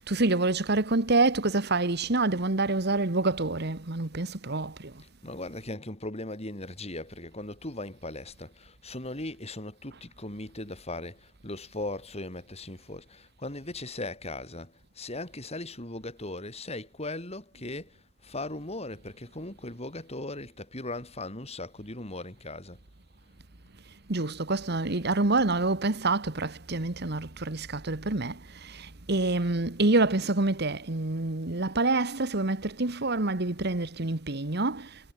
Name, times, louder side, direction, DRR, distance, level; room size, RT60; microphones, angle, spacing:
voice 1, 0.0-4.9 24.1-28.4 28.6-34.9, right 2 dB, 55° right, 1.7 m, -27 dB
voice 2, 5.2-22.8, left 2 dB, 35° left, 5.5 m, -38 dB
head